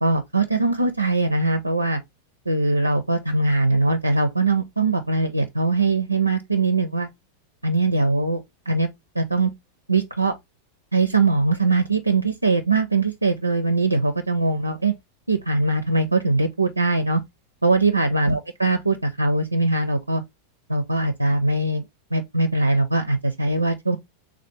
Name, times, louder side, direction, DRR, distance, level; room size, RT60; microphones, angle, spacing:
voice 1, 0.0-2.0 2.5-7.1 7.6-8.9 9.2-9.5 9.9-10.3 10.9-14.9 15.3-17.2 17.6-20.2 20.7-21.8 22.1-24.0, right 3 dB, 85° right, 0.4 m, -21 dB
3.3 x 2.4 x 4.0 m
figure-of-eight pair, 90°, 0 cm